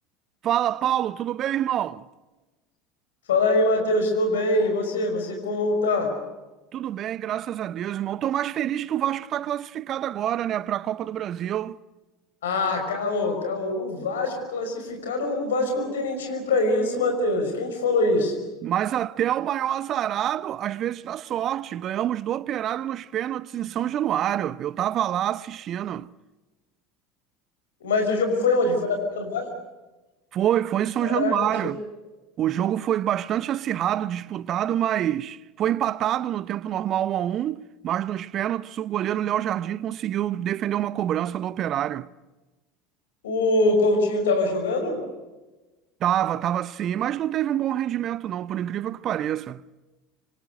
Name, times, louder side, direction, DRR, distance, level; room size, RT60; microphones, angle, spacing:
voice 1, 0.4-2.1 6.7-11.8 18.6-26.1 30.3-31.8 32.4-42.1 46.0-49.6, right 11 dB, 40° right, 0.8 m, -26 dB
voice 2, 3.3-6.1 12.4-18.4 27.8-29.5 31.0-31.7 43.2-45.0, left 2 dB, 70° left, 5.6 m, -24 dB
27.0 x 24.5 x 6.5 m
figure-of-eight pair, 70°, 0 cm